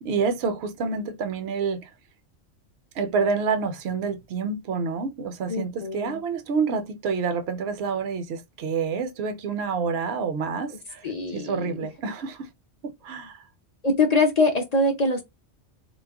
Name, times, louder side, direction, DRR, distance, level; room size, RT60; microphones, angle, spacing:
voice 1, 0.0-1.9 2.9-12.5 12.8-13.4, right 5 dB, 65° right, 0.8 m, -28 dB
voice 2, 5.5-6.2 11.0-11.9 13.8-15.2, left 2 dB, 50° left, 0.5 m, -23 dB
2.3 x 2.1 x 3.3 m
omnidirectional pair, 1.3 m